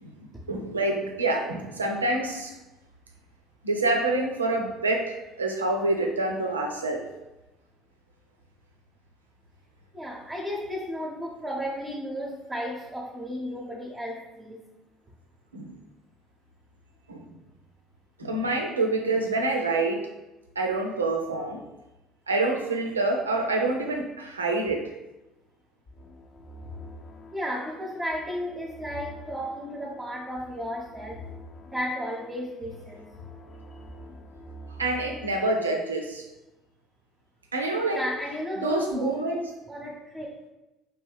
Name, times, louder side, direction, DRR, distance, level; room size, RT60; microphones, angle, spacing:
voice 1, 0.5-2.6 3.6-7.1 15.5-15.8 17.1-17.2 18.2-20.1 20.6-21.6 22.3-24.9 34.8-36.3 37.5-38.0 38.6-39.4, right 2 dB, 80° right, 3 dB, 0.5 m, -27 dB
voice 2, 9.9-14.7 27.3-31.2 31.7-33.1 37.9-40.3, equal, 15° right, -4 dB, 0.8 m, -34 dB
sound 1, 25.9-35.4, left 1 dB, 35° left, 0.7 m, -46 dB
4.5 x 3.0 x 3.4 m, 1.0 s
figure-of-eight pair, 60°, 0 cm